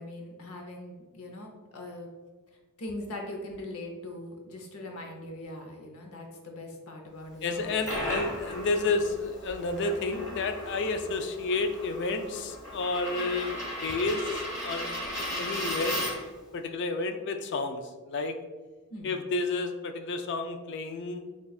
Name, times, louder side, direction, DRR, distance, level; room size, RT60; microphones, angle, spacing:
voice 1, 0.0-2.1 2.8-8.2 18.9-19.2, left 1 dB, 80° left, 2 dB, 0.8 m, -41 dB
voice 2, 7.4-13.5 13.8-14.3 14.6-14.9 15.3-16.0 16.5-18.4 19.0-21.3, left 3 dB, 55° left, 7 dB, 0.4 m, -30 dB
Coin (dropping), 7.5-16.4, equal, 15° left, 1.1 m, -36 dB
6.6 x 2.4 x 2.4 m, 1.3 s
head